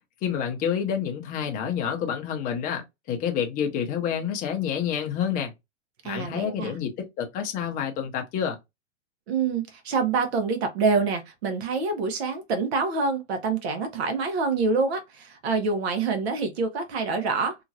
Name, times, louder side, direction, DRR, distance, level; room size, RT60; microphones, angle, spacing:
voice 1, 0.2-5.5 6.0-8.6, left 8 dB, 25° left, 0.7 m, -28 dB
voice 2, 6.0-6.8 9.3-17.6, right 4 dB, 60° right, 1.1 m, -26 dB
2.9 x 2.4 x 2.6 m
hypercardioid pair, 130°, 36 cm